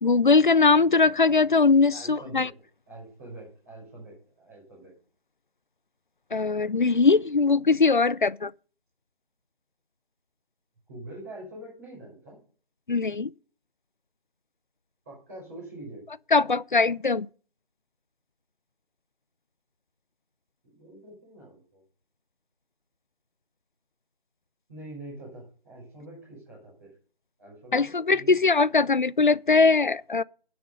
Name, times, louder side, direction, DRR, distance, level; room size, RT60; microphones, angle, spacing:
voice 1, 0.0-2.5 6.3-8.5 12.9-13.3 16.3-17.3 27.7-30.2, left 4 dB, 55° left, 0.6 m, -21 dB
voice 2, 1.9-2.5 2.9-4.9 10.9-12.4 15.0-16.0 20.6-21.8 24.7-26.9 27.4-28.4, right 1 dB, 20° right, 6.4 m, -44 dB
17.0 x 6.7 x 5.3 m
figure-of-eight pair, 170°, 30 cm